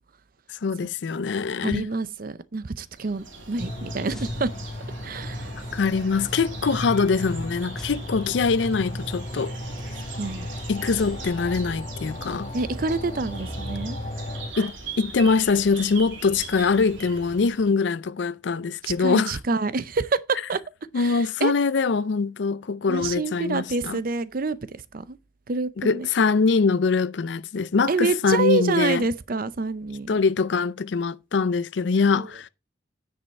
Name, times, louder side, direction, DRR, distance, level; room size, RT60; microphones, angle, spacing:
voice 1, 0.5-1.9 5.7-9.5 10.7-12.5 14.6-19.4 20.9-24.0 25.8-29.0 30.1-32.5, left 4 dB, 70° left, 0.5 m, -23 dB
voice 2, 1.6-4.5 5.0-5.5 10.2-10.5 12.5-14.0 18.8-20.6 20.9-21.5 22.9-25.2 25.5-26.1 27.9-30.1 32.1-32.3, right 3 dB, 50° right, 0.6 m, -27 dB
sound 1, 2.9-17.8, right 3 dB, 85° right, 2.6 m, -41 dB
sound 2, 3.6-14.5, left 1 dB, 35° left, 1.2 m, -35 dB
sound 3, 4.1-5.3 7.8-9.0 10.9-12.2, equal, 5° left, 1.1 m, -46 dB
9.5 x 5.4 x 4.2 m
head